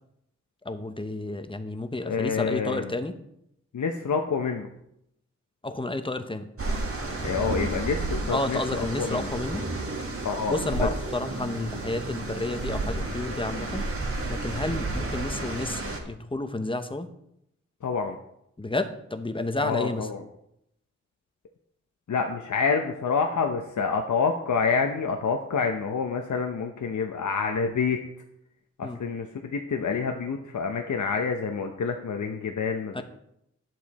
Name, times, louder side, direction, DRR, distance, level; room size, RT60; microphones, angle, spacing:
voice 1, 0.6-3.1 5.6-6.5 8.3-9.6 10.5-13.8 14.3-17.1 18.6-20.1 28.8-29.0 32.9-33.0, left 2 dB, 15° left, 9 dB, 0.8 m, -31 dB
voice 2, 2.0-2.9 3.7-4.7 7.2-9.3 10.2-10.9 17.8-18.1 19.6-20.2 22.1-28.0 28.8-33.0, left 5 dB, 90° left, 4 dB, 0.8 m, -27 dB
sound 1, 6.6-16.0, right 2 dB, 50° right, 1.7 m, -31 dB
11.0 x 7.6 x 4.1 m, 0.78 s
wide cardioid pair, 85°, 29 cm